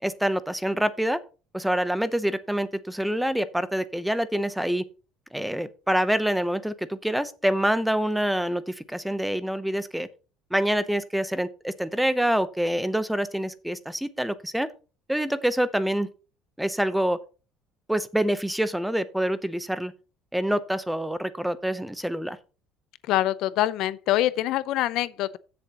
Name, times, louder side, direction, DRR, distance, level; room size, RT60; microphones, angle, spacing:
voice 1, 0.0-1.2 1.5-4.8 5.3-10.1 10.5-14.7 15.1-16.1 16.6-17.2 17.9-19.9 20.3-22.4, right 1 dB, ahead, 0.7 m, -26 dB
voice 2, 23.1-25.4, left 14 dB, 65° left, 0.5 m, -25 dB
15.5 x 6.9 x 3.0 m
cardioid pair, 140°, 0 cm